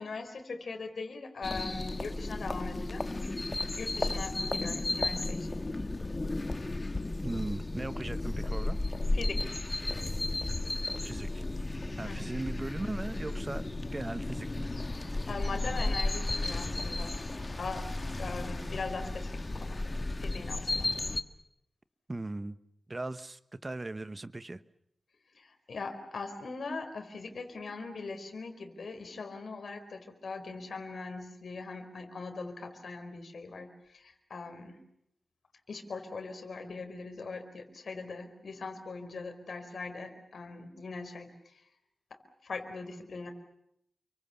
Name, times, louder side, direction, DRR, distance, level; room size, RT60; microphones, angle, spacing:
voice 1, 0.0-3.1 3.7-5.5 9.1-9.5 12.0-12.3 15.3-17.2 17.5-17.9 18.2-19.8 20.2-20.9 25.3-34.8 35.7-41.7 42.1-43.3, left 4 dB, 70° left, 6 dB, 4.5 m, -41 dB
sound 1, 1.4-21.2, left 2 dB, 30° left, 1.6 m, -34 dB
voice 2, 7.2-8.8 11.0-11.4 12.0-13.7 13.9-14.7 22.1-22.6 22.9-24.6, right 2 dB, 25° right, 13 dB, 1.1 m, -38 dB
29.5 x 24.0 x 7.1 m, 0.76 s
wide cardioid pair, 95°, 0 cm